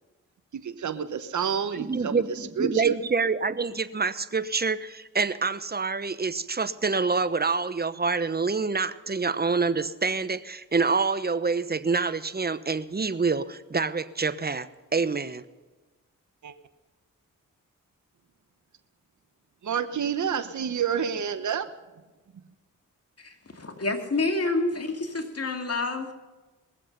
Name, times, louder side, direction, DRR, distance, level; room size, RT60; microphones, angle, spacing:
voice 1, 0.5-3.0 16.4-16.5 19.6-21.7, right 7 dB, 55° right, 11 dB, 1.0 m, -29 dB
voice 2, 1.7-15.4, right 4 dB, 25° right, 14 dB, 1.0 m, -27 dB
voice 3, 23.2-26.1, left 3 dB, 40° left, 5 dB, 2.4 m, -28 dB
20.5 x 7.5 x 6.7 m, 1.2 s
supercardioid pair, 40°, 36 cm